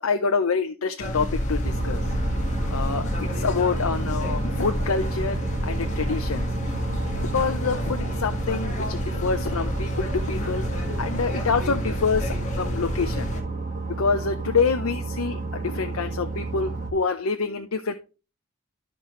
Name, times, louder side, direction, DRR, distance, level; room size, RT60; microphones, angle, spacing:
voice 1, 0.0-2.0 2.7-6.5 7.3-10.6 11.0-13.3 14.0-17.9, left 5 dB, 80° left, 7 dB, 0.6 m, -26 dB
sound 1, 1.0-13.4, left 1 dB, 35° left, 1.7 m, -29 dB
sound 2, 1.6-16.9, right 3 dB, 40° right, 1.5 m, -31 dB
13.0 x 5.3 x 3.1 m, 0.32 s
head